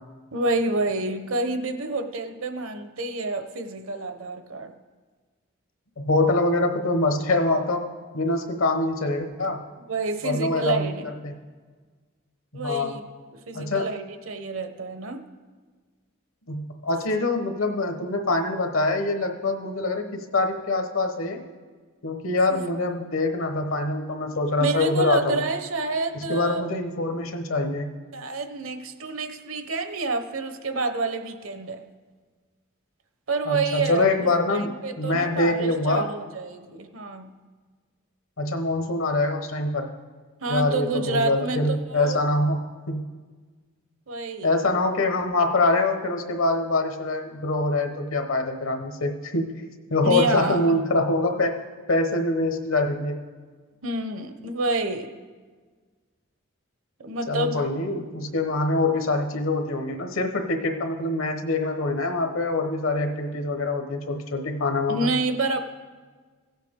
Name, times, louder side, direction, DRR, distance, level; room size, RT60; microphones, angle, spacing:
voice 1, 0.3-4.7 9.9-11.1 12.5-15.2 22.5-22.6 24.6-26.7 28.1-31.8 33.3-34.1 34.5-37.3 40.4-41.6 41.9-42.2 44.1-44.5 50.0-50.8 53.8-55.1 57.0-57.6 64.9-65.6, right 3 dB, 75° right, 8 dB, 0.8 m, -28 dB
voice 2, 6.0-7.8 8.1-9.6 10.2-11.0 11.2-11.3 12.6-12.9 13.5-13.9 16.5-21.4 22.0-25.4 26.1-27.9 33.5-34.7 35.0-36.1 38.4-39.9 40.5-42.6 42.9-43.0 44.4-49.5 49.9-51.6 51.9-53.2 57.3-65.1, left 2 dB, 75° left, 5 dB, 1.1 m, -24 dB
16.5 x 7.4 x 3.7 m, 1.4 s
head